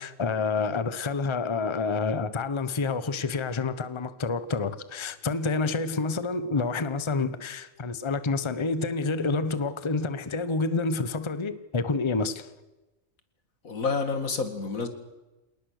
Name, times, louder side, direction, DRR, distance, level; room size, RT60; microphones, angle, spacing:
voice 1, 0.0-12.5, left 4 dB, 25° left, 0.9 m, -28 dB
voice 2, 13.6-14.9, left 4 dB, 85° left, 2.5 m, -29 dB
27.0 x 19.0 x 6.6 m
omnidirectional pair, 1.4 m